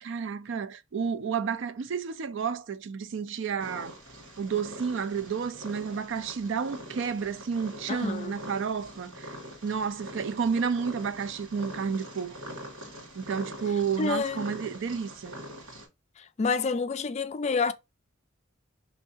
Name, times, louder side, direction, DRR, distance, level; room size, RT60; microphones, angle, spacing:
voice 1, 0.0-4.0 4.4-9.4 9.6-12.4 13.1-15.4, right 6 dB, 65° right, 0.4 m, -31 dB
Purr, 3.6-15.9, equal, 80° right, 2.0 m, -44 dB
voice 2, 7.9-8.3 14.0-14.5 16.4-17.7, left 4 dB, 35° left, 0.3 m, -28 dB
4.5 x 3.2 x 2.7 m
head